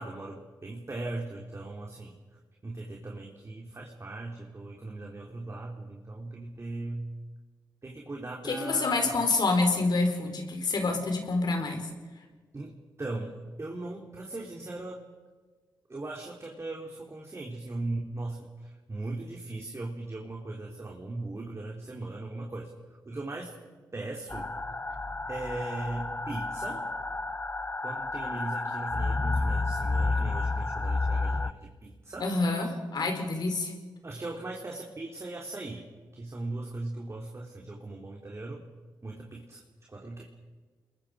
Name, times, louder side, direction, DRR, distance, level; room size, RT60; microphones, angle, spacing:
voice 1, 0.0-2.1 2.6-7.1 7.8-9.2 12.5-15.0 15.9-22.7 23.1-23.6 23.9-24.5 25.3-26.9 27.8-32.3 34.0-35.9 36.1-38.6 39.0-39.6 39.9-40.4, right 2 dB, 35° right, -1 dB, 3.8 m, -38 dB
voice 2, 8.4-11.9 32.2-33.7, left 3 dB, 65° left, 5 dB, 4.5 m, -27 dB
sound 1, 24.3-31.5, left 3 dB, 25° left, 0.9 m, -31 dB
29.0 x 22.0 x 5.2 m, 1.4 s
supercardioid pair, 45°, 8 cm